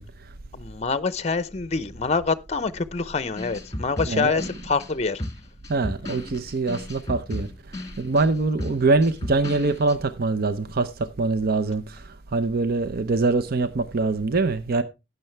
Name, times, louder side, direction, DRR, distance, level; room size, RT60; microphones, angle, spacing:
voice 1, 0.0-0.3 4.0-4.5 5.7-14.8, right 3 dB, 55° right, 0.6 m, -24 dB
voice 2, 0.5-5.2, left 4 dB, 35° left, 0.6 m, -26 dB
sound 1, 3.4-9.9, left 1 dB, 20° left, 1.9 m, -34 dB
12.0 x 9.4 x 3.3 m
head